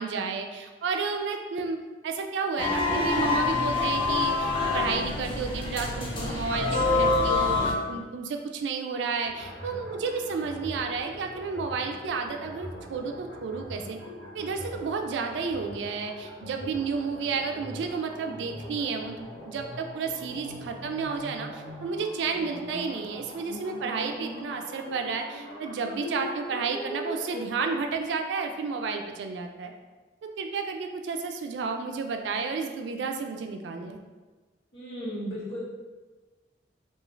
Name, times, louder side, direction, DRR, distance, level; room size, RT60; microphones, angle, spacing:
voice 1, 0.0-14.0 14.3-29.7 30.4-34.0, right 5 dB, 75° right, 4 dB, 0.3 m, -31 dB
sound 1, 2.6-7.7, left 3 dB, 30° left, 0.4 m, -26 dB
voice 2, 6.5-7.3 34.7-35.6, equal, 85° left, -8 dB, 1.1 m, -37 dB
sound 2, 9.2-27.8, equal, 55° left, 0.8 m, -41 dB
2.4 x 2.4 x 3.0 m, 1.3 s
head